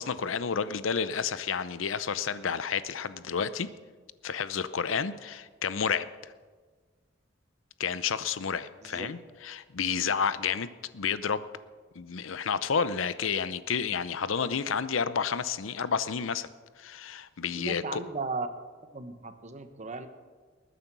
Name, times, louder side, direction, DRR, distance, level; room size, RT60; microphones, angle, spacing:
voice 1, 0.0-3.7 4.2-6.3 7.8-11.4 12.0-16.5 16.8-18.0, left 6 dB, 75° left, 14 dB, 0.6 m, -30 dB
voice 2, 8.8-9.1 17.6-18.5 18.9-20.1, right 3 dB, 35° right, 9 dB, 1.1 m, -36 dB
20.5 x 9.4 x 6.1 m, 1.4 s
head